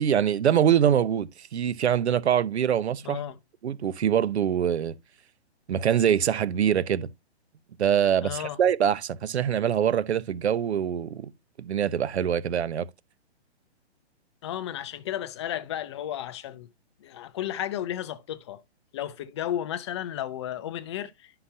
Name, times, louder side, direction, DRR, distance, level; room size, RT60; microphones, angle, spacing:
voice 1, 0.0-3.2 3.6-4.9 5.7-7.1 7.8-11.3 11.6-12.9, right 9 dB, 75° right, 0.9 m, -24 dB
voice 2, 3.0-3.3 8.2-8.6 14.4-16.7 17.0-18.6 18.9-21.4, left 11 dB, 25° left, 0.5 m, -33 dB
11.0 x 5.8 x 2.8 m
hypercardioid pair, 155°, 33 cm